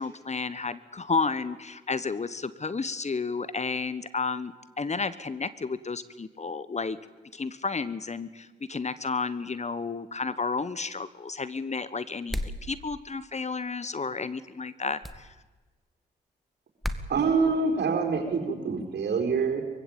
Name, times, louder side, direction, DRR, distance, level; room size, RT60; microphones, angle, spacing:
voice 1, 0.0-7.0 7.3-15.3, left 4 dB, 35° left, 16 dB, 1.2 m, -32 dB
sound 1, 12.3-12.6 15.0-15.2 16.8-17.1, left 1 dB, ahead, 2.0 m, -31 dB
voice 2, 17.1-19.6, right 4 dB, 65° right, 3 dB, 4.6 m, -26 dB
23.5 x 15.5 x 9.0 m, 1.2 s
supercardioid pair, 50°, 19 cm